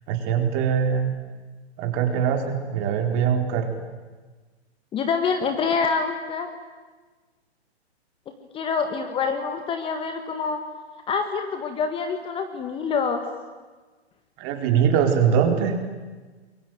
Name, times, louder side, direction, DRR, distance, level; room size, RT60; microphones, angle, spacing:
voice 1, 0.1-1.1 1.8-3.7 14.4-15.7, right 8 dB, 30° right, 4 dB, 4.2 m, -22 dB
voice 2, 4.9-6.5 8.5-10.6 11.1-13.2, left 5 dB, 15° left, 7 dB, 1.7 m, -26 dB
27.5 x 23.0 x 9.3 m, 1.3 s
hypercardioid pair, 135°, 33 cm